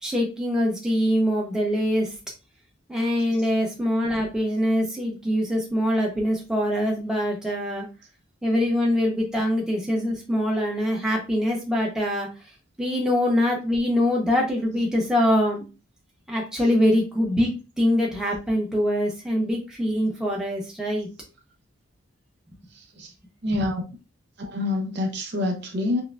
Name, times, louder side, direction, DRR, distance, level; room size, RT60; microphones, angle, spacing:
voice 1, 0.0-2.1 2.9-7.9 8.4-12.3 12.8-15.6 16.3-17.5 17.8-21.1, equal, 5° right, -2 dB, 0.8 m, -23 dB
voice 2, 22.7-23.1 23.4-23.8 24.4-26.0, left 2 dB, 50° right, 3 dB, 0.7 m, -27 dB
5.4 x 2.2 x 2.4 m, 0.30 s
head